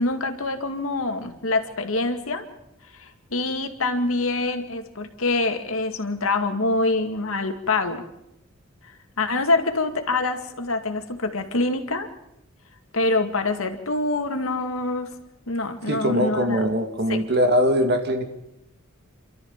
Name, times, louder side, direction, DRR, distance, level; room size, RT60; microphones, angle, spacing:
voice 1, 0.0-2.4 3.0-8.0 9.2-12.1 12.9-15.1 15.5-16.6 17.1-17.2, left 2 dB, 85° left, 6 dB, 2.2 m, -25 dB
voice 2, 15.9-18.2, equal, 55° right, 6 dB, 2.3 m, -21 dB
28.5 x 13.0 x 7.4 m, 0.85 s
head